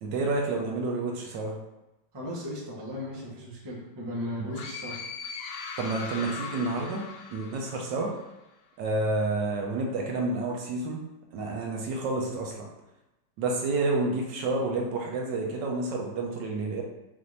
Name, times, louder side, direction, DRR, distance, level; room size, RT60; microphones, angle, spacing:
voice 1, 0.0-1.6 5.8-7.0 7.3-8.1 8.8-11.0 11.3-12.6 13.4-16.8, right 3 dB, 75° right, 0 dB, 1.2 m, -29 dB
voice 2, 2.1-5.0, left 1 dB, 20° right, -5 dB, 0.6 m, -36 dB
sound 1, 4.5-8.2, left 5 dB, 80° left, 1.3 m, -39 dB
5.7 x 2.5 x 3.2 m, 0.98 s
omnidirectional pair, 2.1 m